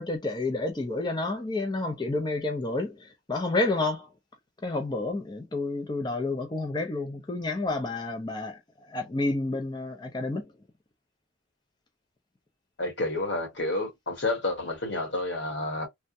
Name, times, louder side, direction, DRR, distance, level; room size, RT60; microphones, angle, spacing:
voice 1, 0.0-4.1 4.6-8.6 8.9-10.4, left 2 dB, 20° left, 0.4 m, -30 dB
voice 2, 12.8-15.9, left 2 dB, 70° left, 1.4 m, -30 dB
3.3 x 2.1 x 2.6 m
head